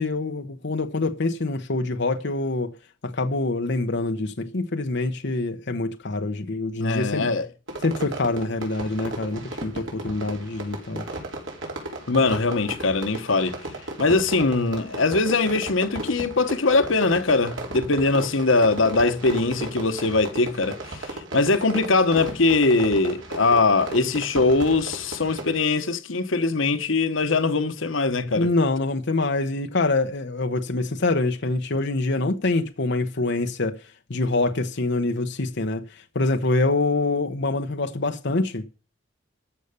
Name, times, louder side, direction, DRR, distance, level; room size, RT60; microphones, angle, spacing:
voice 1, 0.0-2.7 3.0-7.3 7.8-11.0 28.4-33.8 34.1-38.6, left 2 dB, 65° left, 1.0 m, -25 dB
voice 2, 6.8-7.5 12.1-13.6 14.0-28.5, left 3 dB, 90° left, 1.2 m, -22 dB
Fireworks, 7.7-25.6, right 2 dB, 85° right, 4.5 m, -35 dB
13.5 x 6.8 x 6.8 m
head